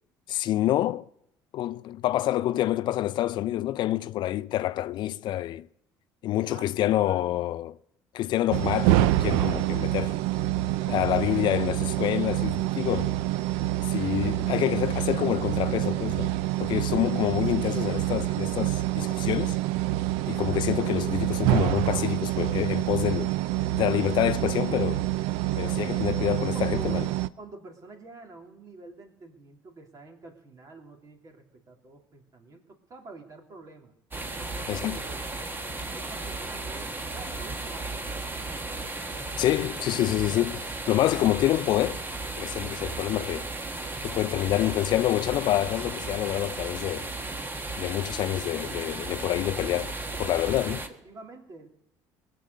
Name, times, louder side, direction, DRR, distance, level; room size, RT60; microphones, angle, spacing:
voice 1, 0.3-1.1 1.5-5.7 6.2-7.8 8.1-10.1 10.9-13.1 13.9-16.3 16.6-19.6 20.3-23.4 23.7-25.0 25.6-27.1 34.7-35.0 39.4-42.0 42.4-43.5 44.0-47.1 47.8-49.9 50.2-50.8, left 14 dB, 60° left, 0.4 m, -27 dB
voice 2, 6.5-7.3 26.4-27.0 27.4-33.9 34.5-35.4 35.9-38.3 50.7-51.7, right 3 dB, 40° right, 2.8 m, -47 dB
sound 1, 8.5-27.3, right 15 dB, 85° right, 0.4 m, -27 dB
sound 2, 34.1-50.9, right 2 dB, 25° right, 1.4 m, -35 dB
19.5 x 7.6 x 6.6 m
supercardioid pair, 85°, 9 cm